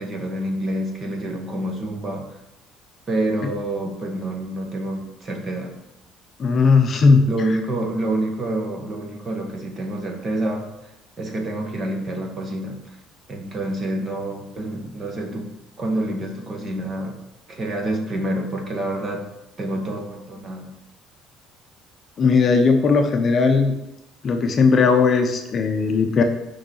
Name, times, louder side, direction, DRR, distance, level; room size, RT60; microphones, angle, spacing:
voice 1, 0.0-2.4 3.1-5.8 7.3-10.9 11.2-13.0 13.3-15.5 15.8-17.2 17.5-19.3 19.6-20.7, right 1 dB, 30° right, 2 dB, 1.6 m, -27 dB
voice 2, 6.4-7.2 22.2-23.7 24.2-26.2, left 4 dB, 35° left, 5 dB, 0.8 m, -17 dB
6.5 x 5.6 x 6.6 m, 0.88 s
cardioid pair, 145°, 0 cm